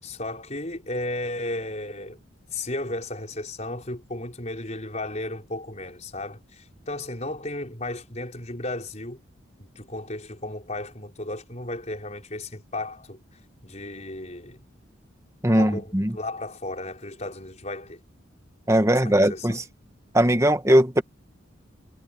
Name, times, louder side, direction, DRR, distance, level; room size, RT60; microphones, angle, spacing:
voice 1, 0.0-2.2 2.5-9.2 9.6-13.2 13.6-14.7 15.5-18.0 18.9-19.6, left 2 dB, 35° left, 5.5 m, -34 dB
voice 2, 15.4-16.2 18.7-19.6 20.1-21.0, right 1 dB, 15° right, 1.4 m, -19 dB
head